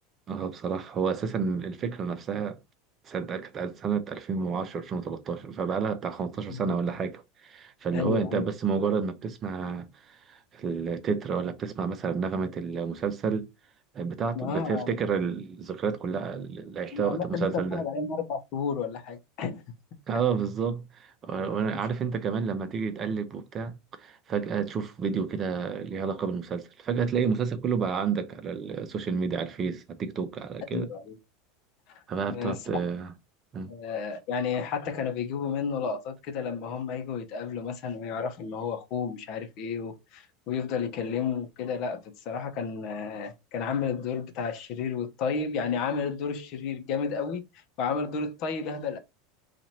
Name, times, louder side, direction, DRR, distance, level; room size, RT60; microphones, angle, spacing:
voice 1, 0.3-2.6 3.1-13.5 13.9-17.8 20.1-23.7 24.0-30.9 32.1-33.1 33.5-33.7, right 6 dB, 35° right, 0.6 m, -30 dB
voice 2, 7.9-8.5 14.3-14.9 16.9-19.6 30.7-31.2 31.9-32.0 32.3-32.8 33.7-49.0, left 6 dB, 50° left, 0.8 m, -32 dB
2.9 x 2.5 x 4.2 m
hypercardioid pair, 80°, 0 cm